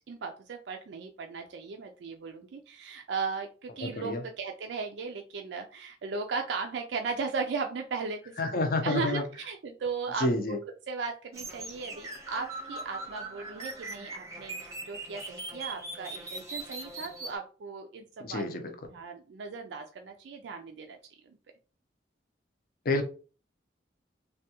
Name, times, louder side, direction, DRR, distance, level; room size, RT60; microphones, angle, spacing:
voice 1, 0.1-8.6 8.8-10.6 10.9-14.6 14.9-18.4 18.9-21.0 21.2-21.4, right 4 dB, 75° right, 0.4 m, -37 dB
voice 2, 3.8-4.2 8.4-9.2 10.2-10.6 18.2-18.7 22.9-23.0, left 2 dB, 50° left, 0.5 m, -28 dB
sound 1, 11.3-17.3, right 2 dB, 15° right, 0.7 m, -40 dB
3.3 x 2.3 x 2.8 m
head